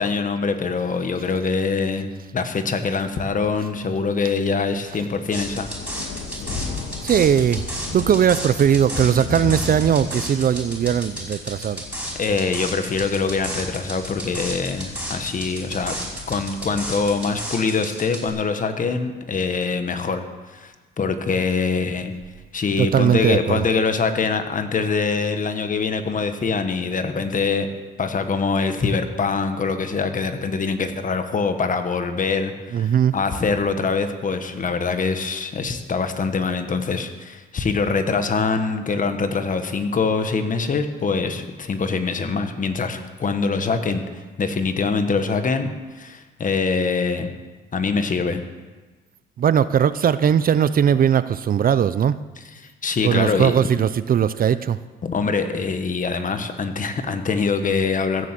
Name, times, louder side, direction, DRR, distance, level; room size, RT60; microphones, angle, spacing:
voice 1, 0.0-5.7 12.1-16.0 16.3-20.2 20.5-22.1 22.5-27.7 28.0-44.0 44.4-45.7 46.0-47.3 47.7-48.4 52.8-53.5 55.0-58.3, left 4 dB, 40° left, 8 dB, 1.4 m, -24 dB
sound 1, 4.7-17.4, left 4 dB, 65° left, 1.7 m, -36 dB
sound 2, 5.3-18.3, right 1 dB, 5° right, 5.3 m, -33 dB
voice 2, 7.0-7.6 7.9-11.8 22.8-23.6 32.7-33.1 49.4-52.1 53.0-54.8, right 8 dB, 45° right, 15 dB, 0.5 m, -19 dB
16.0 x 7.9 x 7.6 m, 1.3 s
cardioid pair, 90°, 20 cm